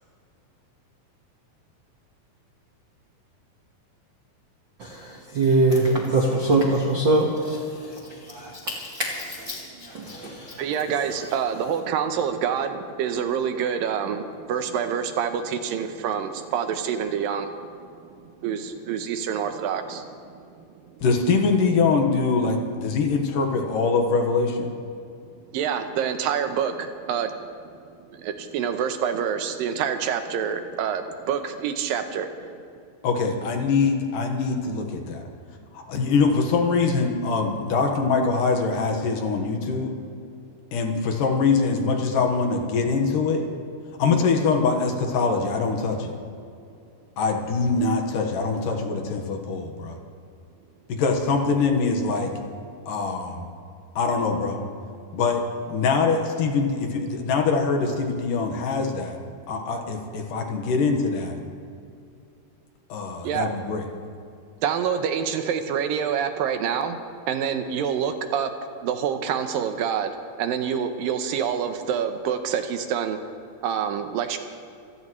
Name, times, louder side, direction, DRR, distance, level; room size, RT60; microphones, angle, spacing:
voice 1, 4.8-10.8 11.0-11.2, right 2 dB, 55° right, -2 dB, 1.3 m, -24 dB
voice 2, 10.6-20.6 25.5-27.7 28.1-32.5 63.2-63.5 64.6-67.0 67.3-68.5 68.8-70.1 70.4-73.2 73.6-74.4, right 8 dB, 75° right, 7 dB, 2.5 m, -27 dB
voice 3, 21.0-24.7 33.0-35.2 35.7-39.9 40.7-43.5 44.0-46.1 47.2-50.0 50.9-52.3 52.9-53.5 54.0-54.6 55.1-59.2 59.5-61.4 62.9-63.9, left 4 dB, 70° left, 3 dB, 2.8 m, -23 dB
26.5 x 16.0 x 3.2 m, 2.5 s
omnidirectional pair, 4.2 m